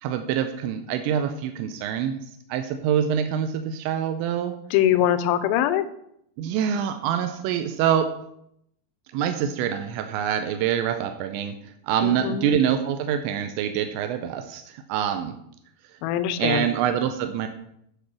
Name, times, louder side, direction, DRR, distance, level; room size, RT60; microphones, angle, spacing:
voice 1, 0.0-2.2 2.5-4.5 6.4-8.1 9.1-15.4 16.4-17.5, right 9 dB, 90° right, 7 dB, 3.0 m, -25 dB
voice 2, 4.7-5.8 12.0-12.5 16.0-16.6, left 11 dB, 85° left, 11 dB, 2.2 m, -22 dB
10.5 x 5.4 x 6.0 m, 0.72 s
omnidirectional pair, 5.1 m